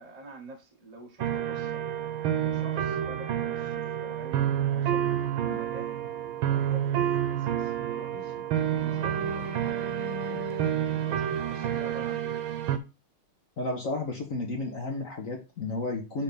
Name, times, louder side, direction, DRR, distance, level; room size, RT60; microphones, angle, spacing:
voice 1, 0.0-1.8 2.3-6.0 6.5-8.5 8.8-9.5 10.2-10.6 11.0-12.3, right 1 dB, 30° right, 0.8 m, -47 dB
sound 1, 1.2-12.8, right 10 dB, 70° right, 1.6 m, -29 dB
voice 2, 13.6-16.2, left 2 dB, 45° left, 1.3 m, -32 dB
5.8 x 3.6 x 5.3 m
omnidirectional pair, 2.3 m